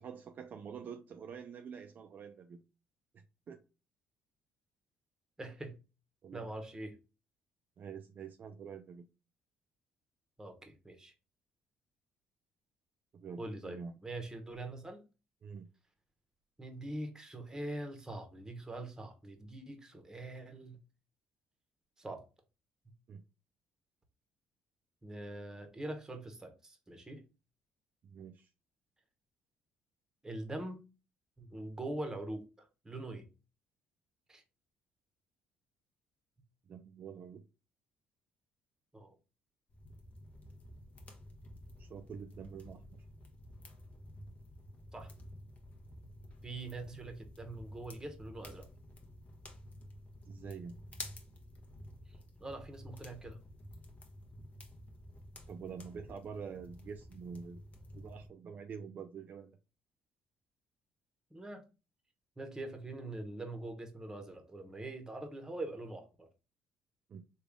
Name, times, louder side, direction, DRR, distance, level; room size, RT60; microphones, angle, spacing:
voice 1, 0.0-2.6 3.1-3.6 6.2-6.5 7.8-9.1 13.1-14.0 15.4-15.7 23.1-23.2 28.0-28.5 36.7-37.4 41.8-43.0 50.2-50.8 55.5-57.6 58.0-59.6 67.1-67.2, right 6 dB, 50° right, 6 dB, 0.4 m, -47 dB
voice 2, 5.4-5.8 6.3-7.0 10.4-11.1 13.4-15.0 16.6-20.8 22.0-22.2 25.0-27.2 30.2-30.8 31.4-33.3 34.3-34.4 38.9-39.1 44.9-45.1 46.4-48.7 52.4-53.4 61.3-61.6 62.4-66.3, right 2 dB, 15° right, 5 dB, 1.0 m, -43 dB
sound 1, 39.7-58.3, left 1 dB, 35° left, 0.9 m, -51 dB
3.3 x 2.4 x 3.5 m, 0.31 s
supercardioid pair, 75°, 4 cm